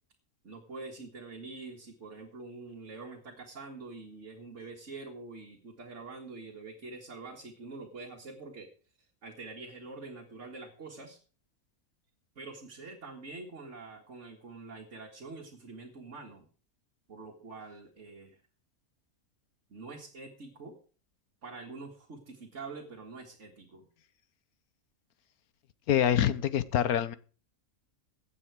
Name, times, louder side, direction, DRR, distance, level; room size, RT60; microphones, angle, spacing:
voice 1, 0.4-8.7 9.2-11.2 12.4-16.5 17.1-18.4 19.7-20.8 21.4-23.9, right 3 dB, 55° right, 1 dB, 2.0 m, -45 dB
voice 2, 25.9-27.1, left 10 dB, 90° left, 15 dB, 1.4 m, -25 dB
16.0 x 9.1 x 4.7 m, 0.39 s
omnidirectional pair, 1.5 m